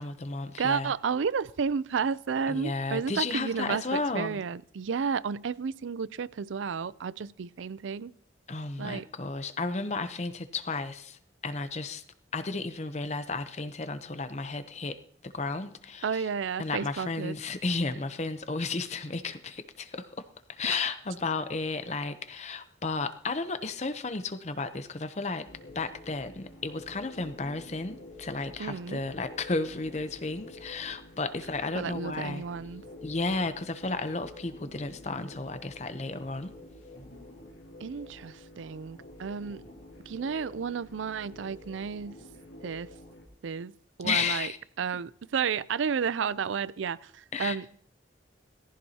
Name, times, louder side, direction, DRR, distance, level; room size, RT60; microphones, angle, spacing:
voice 1, 0.0-0.9 2.5-4.4 8.5-12.0 12.3-16.3 16.6-25.5 25.7-32.4 33.0-36.5 44.0-44.6 47.3-47.6, left 3 dB, 35° left, 0.7 m, -33 dB
voice 2, 0.6-8.1 8.8-9.1 16.0-17.4 20.7-20.8 28.6-29.0 31.8-32.9 37.8-39.6 40.1-42.2 42.6-42.9 43.4-43.7 44.0-44.5 44.8-47.7, right 6 dB, 85° right, 0.4 m, -32 dB
sound 1, 25.5-43.3, left 1 dB, 90° left, 2.9 m, -49 dB
18.0 x 15.0 x 2.8 m
head